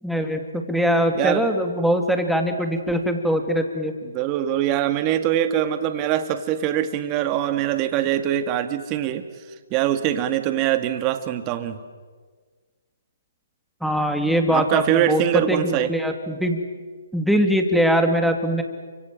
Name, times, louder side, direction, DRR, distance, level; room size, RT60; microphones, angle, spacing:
voice 1, 0.0-3.9 13.8-16.6 17.1-18.6, equal, ahead, 5 dB, 2.5 m, -22 dB
voice 2, 1.1-1.5 4.0-9.3 9.7-11.8 14.5-15.9, right 11 dB, 25° right, 9 dB, 2.0 m, -23 dB
29.5 x 25.5 x 7.6 m, 1.5 s
figure-of-eight pair, 135°, 0 cm